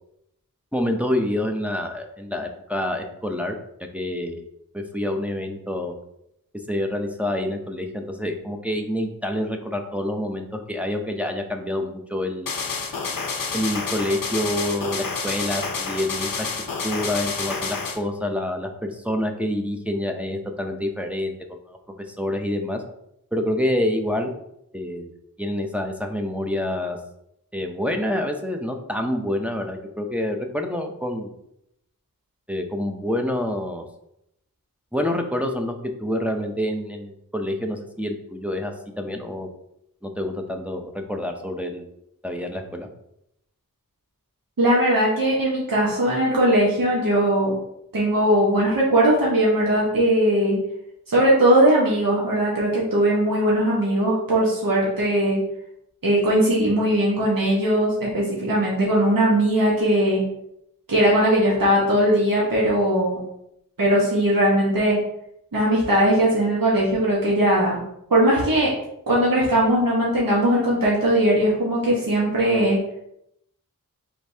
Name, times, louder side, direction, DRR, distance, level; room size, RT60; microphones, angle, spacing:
voice 1, 0.7-4.4 4.7-5.9 6.7-12.5 13.5-16.5 16.8-21.8 22.1-22.8 23.3-24.3 24.7-25.1 25.4-27.0 27.5-31.3 32.5-33.8 34.9-39.5 40.0-41.9 42.2-42.9, left 1 dB, 5° right, 3 dB, 0.5 m, -27 dB
sound 1, 12.5-18.0, left 4 dB, 80° left, 0.6 m, -29 dB
voice 2, 44.6-47.5 47.9-50.6 51.1-55.4 56.0-60.2 60.9-63.2 63.8-65.0 65.5-67.8 68.1-68.7 69.1-72.8, right 1 dB, 75° right, -5 dB, 1.3 m, -19 dB
5.0 x 3.5 x 2.7 m, 0.79 s
wide cardioid pair, 65°, 34 cm